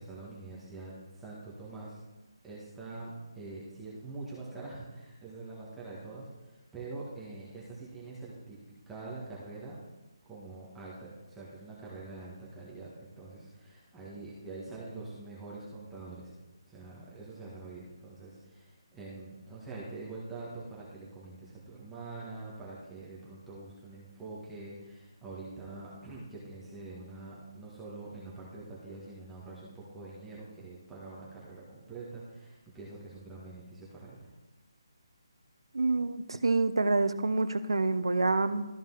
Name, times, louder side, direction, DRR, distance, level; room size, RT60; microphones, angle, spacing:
voice 1, 0.0-2.0 2.4-8.6 8.9-9.8 10.2-16.3 16.7-34.3, right 3 dB, 5° right, -7 dB, 1.7 m, -45 dB
voice 2, 35.7-38.7, right 3 dB, 85° right, 12 dB, 0.7 m, -27 dB
13.0 x 5.3 x 4.0 m, 1.1 s
figure-of-eight pair, 160°, 3 cm